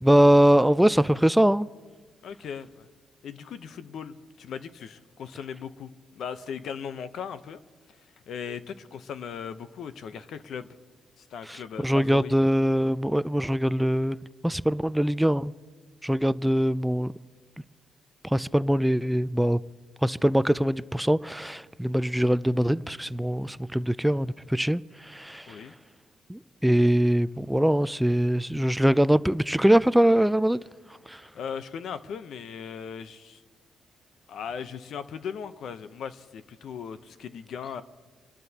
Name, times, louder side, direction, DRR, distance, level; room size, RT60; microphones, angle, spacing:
voice 1, 0.0-1.7 11.5-15.5 16.0-17.1 18.3-19.6 20.0-24.8 25.1-25.5 26.3-30.6 31.1-31.2, equal, 5° right, 0.3 m, -22 dB
voice 2, 2.2-2.9 3.2-7.6 8.3-10.7 11.2-12.3 22.2-22.3 25.5-25.7 31.3-33.4 34.3-37.8, left 7 dB, 65° left, 0.8 m, -38 dB
28.0 x 12.0 x 2.9 m
cardioid pair, 90°, 0 cm